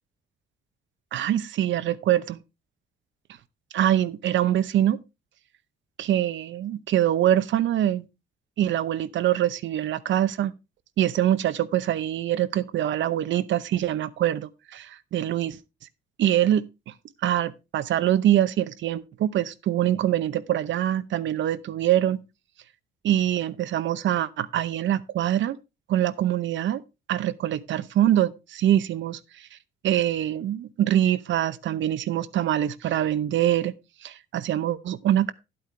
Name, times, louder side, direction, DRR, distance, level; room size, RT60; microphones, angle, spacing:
voice 1, 1.1-2.4 3.7-5.0 6.0-8.1 8.6-10.5 11.0-15.6 16.2-16.6 17.2-22.2 23.0-25.6 25.9-26.8 27.1-29.2 29.8-33.7 34.0-35.3, right 12 dB, 70° right, 0.8 m, -24 dB
11.0 x 8.7 x 3.3 m
cardioid pair, 90°, 20 cm